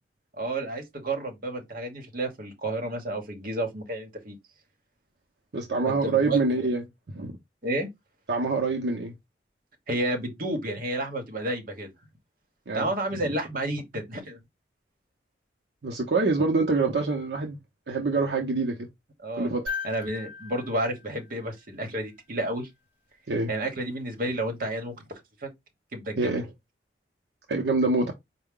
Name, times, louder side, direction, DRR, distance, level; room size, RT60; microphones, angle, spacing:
voice 1, 0.3-4.4 5.8-6.7 7.6-7.9 9.9-11.9 12.7-14.4 19.2-19.5 19.8-22.7 23.5-25.1 25.4-25.5 25.9-26.5, right 1 dB, 50° right, 1.2 m, -31 dB
voice 2, 5.5-6.8 7.1-7.3 8.3-9.1 12.7-12.9 15.8-17.6 17.9-18.9 19.3-19.6 23.3-23.5 26.2-26.4 27.5-28.1, right 3 dB, 75° right, 0.7 m, -25 dB
sound 1, 19.7-22.0 24.0-24.1, left 5 dB, 10° right, 3.2 m, -38 dB
4.6 x 2.2 x 3.6 m
head